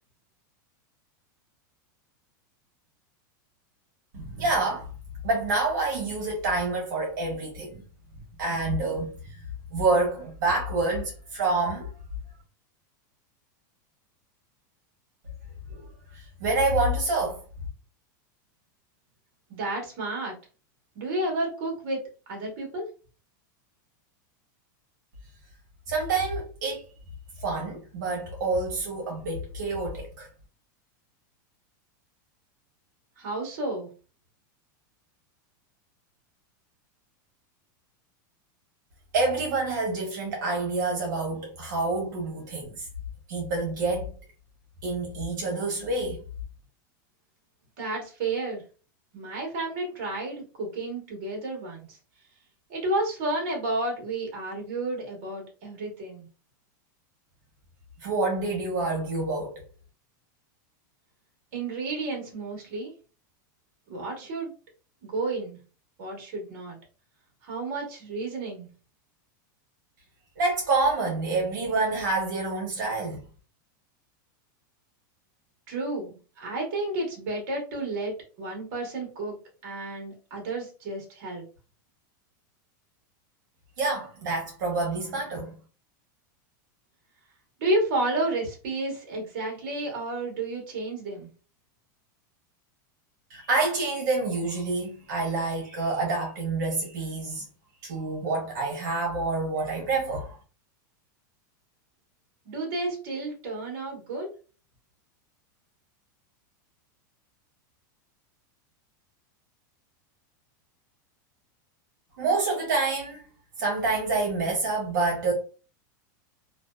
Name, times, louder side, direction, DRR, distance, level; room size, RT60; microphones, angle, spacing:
voice 1, 4.1-4.9 5.2-7.8 8.4-9.5 9.7-11.9 15.7-15.8 16.1-17.4 25.9-26.8 27.4-30.3 39.1-42.9 43.3-44.1 44.8-46.2 58.0-59.6 70.4-73.2 83.8-85.5 93.3-97.4 97.8-100.4 112.2-113.2 113.6-115.3, right 3 dB, 70° right, 0.9 m, -27 dB
voice 2, 19.5-20.3 20.9-22.9 33.2-33.9 47.8-48.6 49.1-52.0 52.7-56.3 61.5-62.9 63.9-64.5 65.0-65.6 66.0-66.8 67.4-68.7 75.7-81.4 87.6-91.3 102.4-104.3, right 2 dB, 45° right, 1.1 m, -31 dB
2.6 x 2.2 x 2.2 m
supercardioid pair, 170°, 11 cm